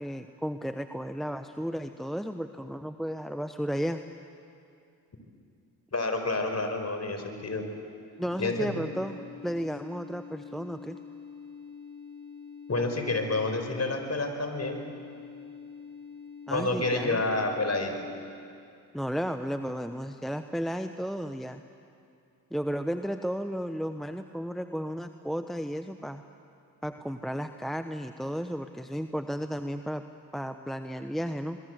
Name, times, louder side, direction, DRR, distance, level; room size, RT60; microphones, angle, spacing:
voice 1, 0.0-4.0 8.2-11.0 16.5-17.2 18.9-21.6 22.5-26.2 26.8-30.0 30.3-31.6, equal, ahead, 8 dB, 1.1 m, -33 dB
voice 2, 5.9-7.6 8.4-8.8 12.7-14.8 16.5-18.0, left 2 dB, 35° left, 5 dB, 5.1 m, -29 dB
sound 1, 8.1-18.2, left 6 dB, 60° right, 7.9 m, -46 dB
25.5 x 22.5 x 8.1 m, 2.5 s
hypercardioid pair, 40°, 44 cm